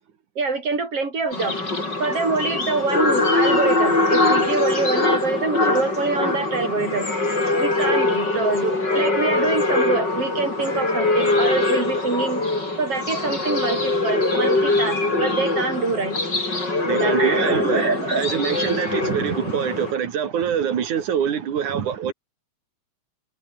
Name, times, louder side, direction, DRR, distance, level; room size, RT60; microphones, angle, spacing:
voice 1, 0.4-1.7 2.0-7.1 7.6-12.4 12.8-16.2 16.9-18.2, right 4 dB, 50° right, 6.5 m, -25 dB
sound 1, 1.3-19.9, left 2 dB, 35° left, 7.0 m, -22 dB
voice 2, 16.8-17.9 18.2-22.1, right 8 dB, 85° right, 3.8 m, -24 dB
omnidirectional pair, 3.3 m